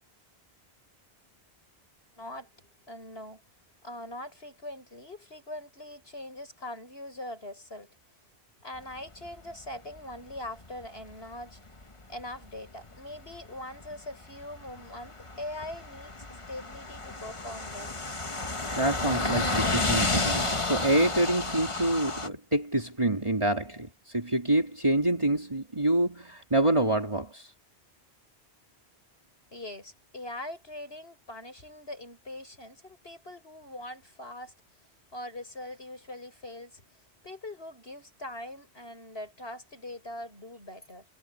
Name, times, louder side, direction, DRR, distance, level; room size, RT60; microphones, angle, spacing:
voice 1, 2.2-3.4 3.8-7.9 8.6-11.6 12.1-18.0 29.5-34.5 35.1-36.8 37.2-41.1, left 1 dB, 65° left, 7.6 m, -42 dB
sound 1, 9.1-10.9 11.1-11.4 11.8-11.9 12.2-12.5 12.8-13.9 14.2-22.3, left 3 dB, 30° left, 1.4 m, -31 dB
voice 2, 18.7-27.5, right 1 dB, 25° right, 3.7 m, -27 dB
omnidirectional pair, 1.1 m